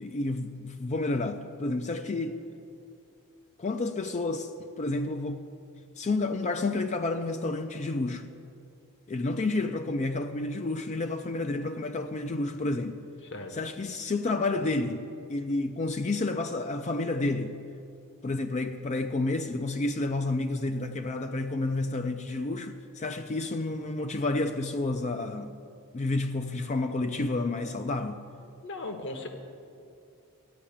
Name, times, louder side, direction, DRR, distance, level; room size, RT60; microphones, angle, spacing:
voice 1, 0.0-2.4 3.6-4.5 4.8-5.4 6.0-8.3 9.1-13.0 13.5-15.0 15.3-17.6 18.2-25.6 25.9-28.2, left 2 dB, 30° left, 0.4 m, -30 dB
voice 2, 28.6-29.3, left 2 dB, 55° left, 1.2 m, -37 dB
14.5 x 5.7 x 8.6 m
head